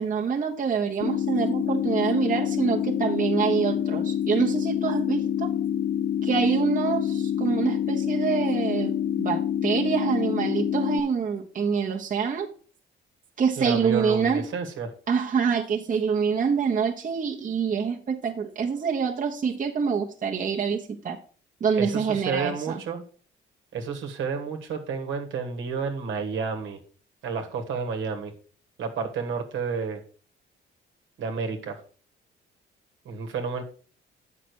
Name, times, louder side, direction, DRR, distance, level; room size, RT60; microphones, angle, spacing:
voice 1, 0.0-5.5 6.2-12.5 13.4-14.5 15.1-21.2 21.6-22.8, right 6 dB, 45° right, 1 dB, 1.2 m, -26 dB
sound 1, 1.0-11.0, left 9 dB, 45° left, 0.5 m, -27 dB
voice 2, 13.6-14.9 21.8-23.0 23.7-26.8 27.2-28.3 28.8-30.0 31.2-31.8 33.0-33.6, right 5 dB, 75° right, 4 dB, 1.5 m, -30 dB
8.1 x 5.9 x 4.6 m, 0.41 s
cardioid pair, 90°, 20 cm